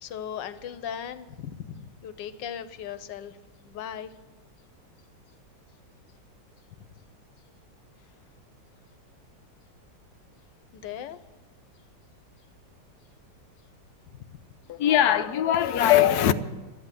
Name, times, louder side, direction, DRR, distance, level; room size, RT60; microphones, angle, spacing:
voice 1, 0.0-3.4 3.6-4.1 6.8-6.9 10.7-11.2 14.1-14.4, left 9 dB, 85° left, 1.4 m, -38 dB
voice 2, 14.7-16.3, left 11 dB, 65° left, 1.1 m, -21 dB
12.5 x 9.5 x 9.7 m
omnidirectional pair, 1.9 m